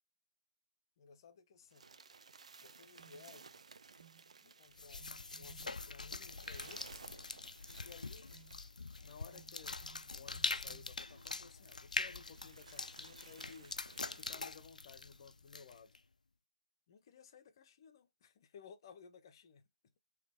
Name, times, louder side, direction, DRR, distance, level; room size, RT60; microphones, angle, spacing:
voice 1, 1.0-1.9 2.6-3.6 4.4-5.0 5.4-6.8 7.8-8.3 9.0-9.8 10.1-13.8 14.1-16.0 16.9-19.6, left 6 dB, 35° left, 0.7 m, -57 dB
sound 1, 1.6-9.1 9.9-10.0 10.3-10.4 11.1-11.2 11.6-11.7 12.2-14.5, right 5 dB, 55° right, 0.5 m, -58 dB
sound 2, 3.0-3.4 4.0-4.3 4.9-6.3 6.6-7.3 7.6-8.7 9.3-11.7 12.0-13.9, right 5 dB, 75° right, 1.8 m, -64 dB
sound 3, 4.8-16.0, left 3 dB, 70° left, 0.4 m, -44 dB
3.9 x 2.9 x 3.5 m
figure-of-eight pair, 140°, 4 cm